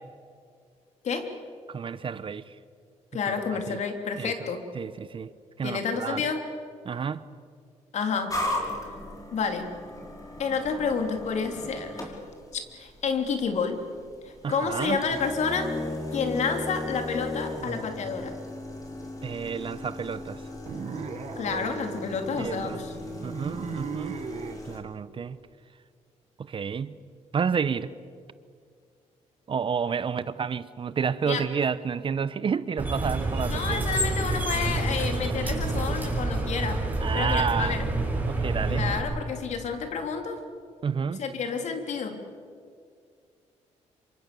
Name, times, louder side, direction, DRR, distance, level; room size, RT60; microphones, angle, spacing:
voice 1, 1.7-2.5 3.5-3.8 4.2-4.5 4.7-5.3 5.6-6.2 6.8-7.2 14.4-15.0 19.2-20.4 22.4-22.8 23.2-24.1 24.6-25.4 26.4-27.0 27.3-27.9 29.5-33.8 37.0-37.9 38.3-38.9 40.8-41.2, right 6 dB, 45° right, 15 dB, 0.9 m, -30 dB
voice 2, 3.1-4.6 5.6-6.4 7.9-8.4 9.3-9.7 10.4-12.1 12.7-13.8 14.2-15.7 16.1-18.3 21.4-22.9 31.2-31.4 33.5-36.8 37.1-37.9 38.7-40.4 41.2-42.2, left 5 dB, 65° left, 5 dB, 3.3 m, -29 dB
sound 1, 8.3-24.8, left 2 dB, 25° left, 5.2 m, -37 dB
sound 2, 20.7-24.6, right 7 dB, 60° right, 1.8 m, -37 dB
sound 3, 32.8-39.0, right 2 dB, 15° right, 7.3 m, -28 dB
27.0 x 24.5 x 6.9 m, 2.2 s
cardioid pair, 95°, 13 cm